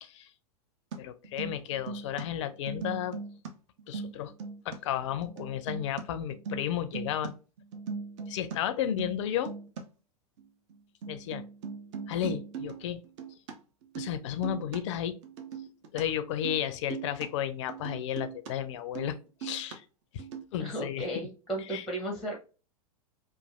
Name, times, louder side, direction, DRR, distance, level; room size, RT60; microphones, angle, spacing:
sound 1, 0.9-1.0 1.2-2.2 2.5-3.5 3.8-4.8 5.2-6.0 6.3-7.3 7.6-8.5 8.8-9.2 9.5-9.8 10.4-10.5 10.7-10.8 11.0-13.5 13.8-14.1 14.4-14.8 15.2-16.0 16.3-16.6 16.9-17.3 17.7-18.5 18.8-19.1 19.4-19.8 20.2-20.4, right 6 dB, 50° right, 0.5 m, -39 dB
voice 1, 1.0-3.2 3.9-4.3 4.7-7.3 8.3-9.5 11.1-11.4 12.1-13.0 14.0-15.1 15.9-19.2 19.4-19.8 20.1-20.2 20.5-21.0 21.7-21.8, left 10 dB, 50° left, 0.4 m, -33 dB
voice 2, 20.6-22.3, right 1 dB, ahead, 0.6 m, -34 dB
3.1 x 2.3 x 2.4 m
figure-of-eight pair, 95°, 19 cm